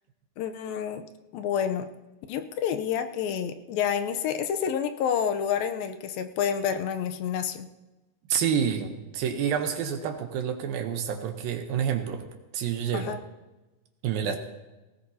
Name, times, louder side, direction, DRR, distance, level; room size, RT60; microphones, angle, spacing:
voice 1, 0.4-1.1 1.3-1.9 2.3-7.7 12.9-13.2 14.2-14.4, left 8 dB, 80° left, 8 dB, 2.5 m, -29 dB
voice 2, 8.3-12.2 12.5-13.1 14.0-14.4, right 8 dB, 80° right, 5 dB, 2.7 m, -28 dB
18.5 x 17.5 x 2.8 m, 1.1 s
omnidirectional pair, 4.2 m